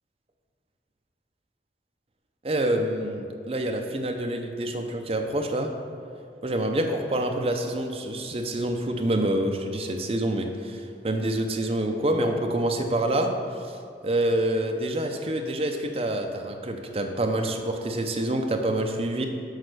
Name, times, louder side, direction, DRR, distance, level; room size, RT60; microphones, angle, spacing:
voice 1, 2.4-5.7 6.4-13.3 13.6-13.8 14.0-19.3, right 1 dB, 35° right, 3 dB, 0.5 m, -27 dB
6.4 x 4.1 x 6.4 m, 2.4 s
head